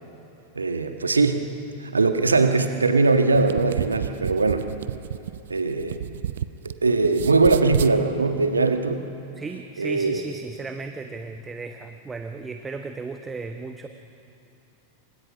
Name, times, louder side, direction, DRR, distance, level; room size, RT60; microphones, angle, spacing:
voice 1, 0.5-1.4 1.8-4.7 5.5-6.0 6.6-9.0 9.8-10.2, right 3 dB, 75° right, 6 dB, 1.6 m, -21 dB
sound 1, 3.3-6.7 7.0-7.9, right 10 dB, 60° right, 0.7 m, -30 dB
voice 2, 9.3-13.9, right 4 dB, 15° right, 6 dB, 1.2 m, -35 dB
29.0 x 25.5 x 6.1 m, 3.0 s
figure-of-eight pair, 90°, 0 cm